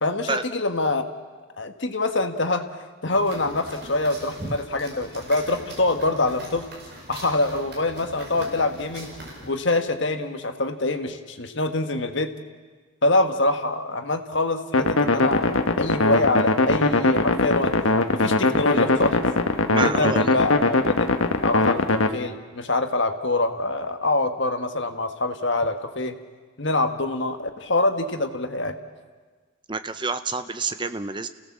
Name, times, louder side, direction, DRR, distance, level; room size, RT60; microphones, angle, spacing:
voice 1, 0.0-1.0 1.6-2.6 3.0-6.7 7.1-9.1 9.5-12.3 13.0-17.7 18.1-19.3 19.8-21.1 21.4-26.2 26.6-28.7, left 2 dB, 60° left, 6 dB, 1.5 m, -25 dB
sound 1, 3.1-9.5, right 1 dB, 55° right, 5.1 m, -41 dB
sound 2, 14.7-22.1, left 2 dB, 80° left, 1.3 m, -21 dB
voice 2, 19.7-20.2 29.7-31.3, right 4 dB, 20° right, 10 dB, 0.7 m, -28 dB
29.5 x 17.0 x 7.4 m, 1.4 s
head